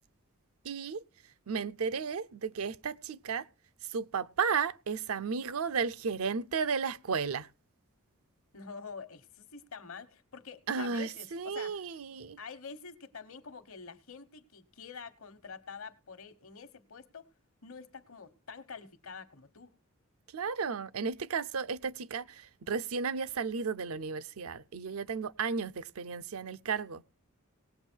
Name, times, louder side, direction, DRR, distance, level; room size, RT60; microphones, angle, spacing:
voice 1, 0.6-1.0 1.5-3.5 3.9-7.5 10.7-12.4 20.3-27.0, right 5 dB, 75° right, 0.6 m, -34 dB
voice 2, 8.5-11.8 12.4-17.3 17.6-19.7, left 5 dB, 70° left, 1.1 m, -47 dB
19.0 x 8.2 x 4.5 m
head